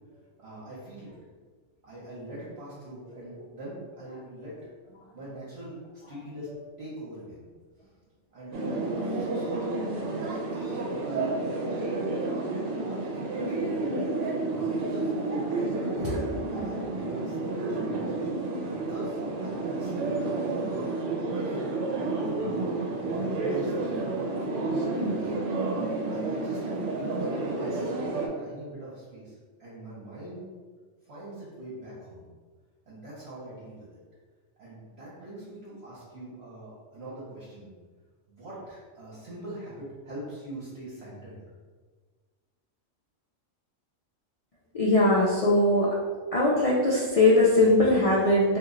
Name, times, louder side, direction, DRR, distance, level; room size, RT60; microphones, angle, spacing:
voice 1, 0.4-1.1 1.8-4.6 5.1-6.5 6.8-7.4 8.3-9.9 10.3-13.9 14.5-18.1 18.6-21.6 21.9-23.9 24.4-25.3 26.1-27.2 27.5-30.4 31.0-32.3 32.9-34.0 34.6-37.7 38.3-41.4, right 1 dB, 55° right, -9 dB, 1.1 m, -42 dB
sound 1, 8.5-28.3, right 2 dB, 75° right, 0.9 m, -30 dB
voice 2, 44.7-45.9 46.3-48.6, left 2 dB, 65° left, -6 dB, 0.3 m, -21 dB
3.0 x 2.4 x 3.7 m, 1.5 s
omnidirectional pair, 1.3 m